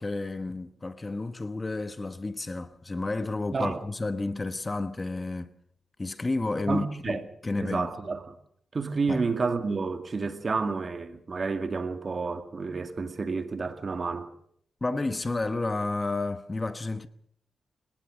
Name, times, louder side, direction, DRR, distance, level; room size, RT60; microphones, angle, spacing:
voice 1, 0.0-5.5 6.0-7.9 9.1-9.3 14.8-17.1, left 2 dB, 25° left, 1.2 m, -31 dB
voice 2, 3.5-3.8 6.7-7.2 7.6-8.3 8.7-14.3, right 4 dB, 45° right, 2.2 m, -30 dB
22.5 x 19.0 x 6.4 m
cardioid pair, 70°, 0 cm